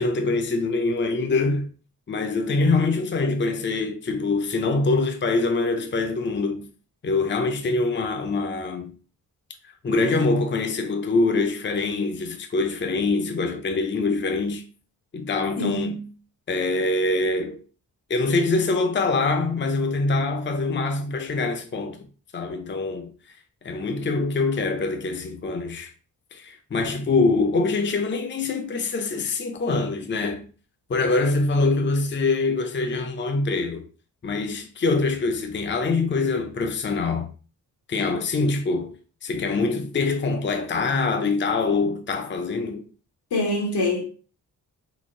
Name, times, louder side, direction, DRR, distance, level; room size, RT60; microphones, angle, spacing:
voice 1, 0.0-1.7 2.1-6.7 7.0-8.9 9.8-14.6 15.1-16.0 16.5-17.6 18.1-22.1 22.3-23.1 23.6-25.9 26.3-30.4 30.9-33.9 34.2-37.3 37.9-38.9 39.2-42.9, left 3 dB, 30° left, 0.6 m, -24 dB
voice 2, 15.6-16.0 43.3-44.0, left 1 dB, 85° left, 1.3 m, -25 dB
3.9 x 2.2 x 3.8 m
cardioid pair, 70°, 38 cm